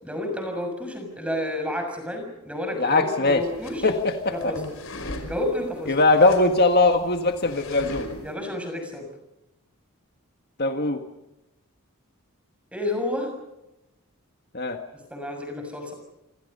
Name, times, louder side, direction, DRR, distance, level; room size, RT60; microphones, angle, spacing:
voice 1, 0.0-3.9 4.3-4.6 5.3-5.9 8.2-9.1 12.7-13.3 15.1-15.9, left 1 dB, 5° right, 4 dB, 6.6 m, -30 dB
voice 2, 2.7-3.4 3.8-4.5 5.9-8.1 10.6-11.0 14.5-14.8, left 2 dB, 45° left, 5 dB, 1.7 m, -21 dB
sound 1, 3.3-8.3, left 1 dB, 60° left, 5.1 m, -39 dB
28.0 x 27.0 x 5.5 m, 0.92 s
head